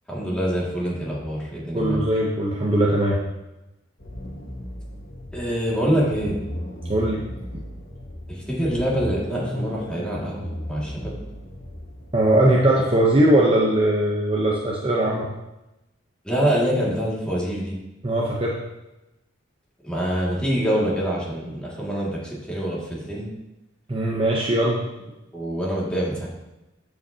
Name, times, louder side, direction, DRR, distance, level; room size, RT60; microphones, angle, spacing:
voice 1, 0.1-2.0 5.3-6.4 8.3-11.1 16.2-17.8 19.8-23.3 25.3-26.3, equal, 5° left, -6 dB, 2.2 m, -25 dB
voice 2, 1.7-3.2 6.9-7.2 7.5-7.6 12.1-15.3 18.0-18.6 23.9-24.8, right 1 dB, 30° right, -3 dB, 0.8 m, -20 dB
sound 1, 4.0-13.4, equal, 80° left, 1.8 m, -36 dB
13.0 x 5.1 x 2.8 m, 0.97 s
head